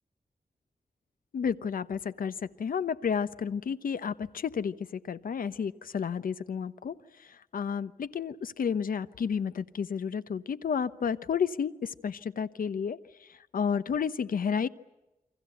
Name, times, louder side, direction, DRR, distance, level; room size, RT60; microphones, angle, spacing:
voice 1, 1.3-6.9 7.5-11.7 12.0-13.0 13.5-14.7, left 7 dB, 80° left, 14 dB, 1.0 m, -31 dB
29.0 x 24.5 x 8.0 m, 1.0 s
wide cardioid pair, 110°, 15 cm